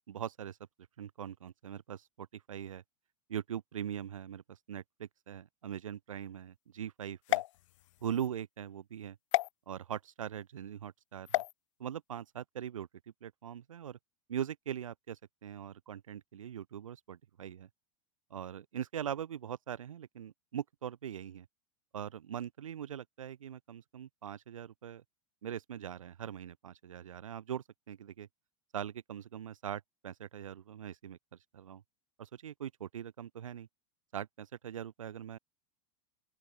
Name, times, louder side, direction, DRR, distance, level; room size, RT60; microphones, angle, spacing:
voice 1, 0.1-0.6 1.0-2.8 3.3-7.4 8.0-9.2 9.7-11.4 11.8-12.9 13.2-14.0 14.3-17.7 18.3-21.5 21.9-25.0 25.4-28.3 28.7-31.2 31.5-31.8 32.2-33.7 34.1-35.4, right 9 dB, 85° right, 2.0 m, -41 dB
sound 1, 7.2-8.3 9.3-9.5 11.3-11.5, left 17 dB, 70° left, 0.8 m, -32 dB
open air
hypercardioid pair, 105°, 17 cm